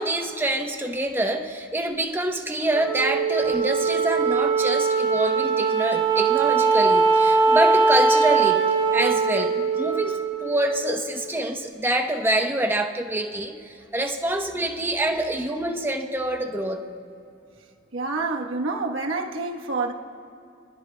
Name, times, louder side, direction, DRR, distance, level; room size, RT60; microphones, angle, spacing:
voice 1, 0.0-8.6 8.9-16.8, right 1 dB, 10° right, 3 dB, 0.8 m, -26 dB
Wind instrument woodwind instrument, 2.7-11.3, right 4 dB, 30° right, 3.2 m, -21 dB
voice 2, 17.9-19.9, right 3 dB, 85° right, 2 dB, 1.1 m, -27 dB
24.5 x 20.5 x 2.2 m, 2.7 s
head